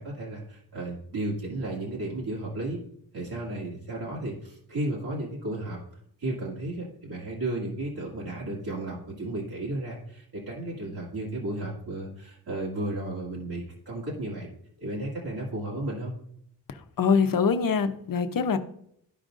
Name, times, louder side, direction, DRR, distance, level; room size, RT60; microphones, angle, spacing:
voice 1, 0.0-2.8 3.1-5.8 6.2-14.5 14.8-16.1, right 1 dB, 70° right, -6 dB, 2.1 m, -33 dB
voice 2, 17.0-18.6, left 5 dB, 55° left, 9 dB, 0.8 m, -23 dB
13.5 x 5.1 x 2.5 m, 0.70 s
wide cardioid pair, 130°, 39 cm